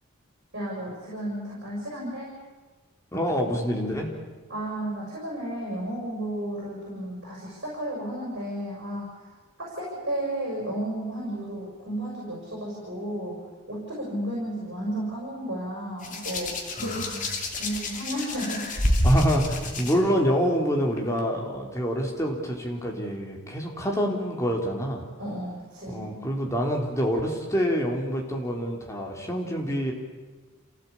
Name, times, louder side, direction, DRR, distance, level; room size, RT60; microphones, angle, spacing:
voice 1, 0.5-2.3 4.5-9.3 9.6-13.4 13.7-17.0 17.5-18.7 25.2-26.2, right 1 dB, 55° right, -3 dB, 6.2 m, -33 dB
voice 2, 3.1-4.1 16.8-17.3 19.0-25.0 25.9-29.9, equal, 15° left, 0 dB, 3.7 m, -26 dB
Hands, 16.0-19.9 21.0-21.2, left 1 dB, 40° left, 3.0 m, -28 dB
28.0 x 16.5 x 8.6 m, 1.3 s
head